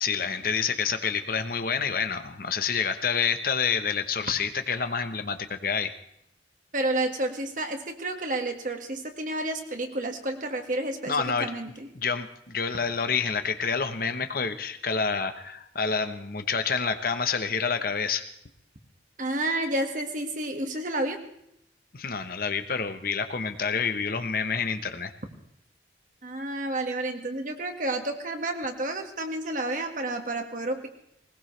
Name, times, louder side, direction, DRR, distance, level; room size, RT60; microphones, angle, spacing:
voice 1, 0.0-5.9 11.1-11.5 11.9-18.3 21.9-25.1, left 5 dB, 55° left, 9 dB, 1.0 m, -28 dB
voice 2, 6.7-11.1 11.4-11.9 19.2-21.2 26.2-30.9, right 2 dB, 45° right, 4 dB, 1.8 m, -30 dB
20.0 x 19.5 x 3.3 m, 0.75 s
head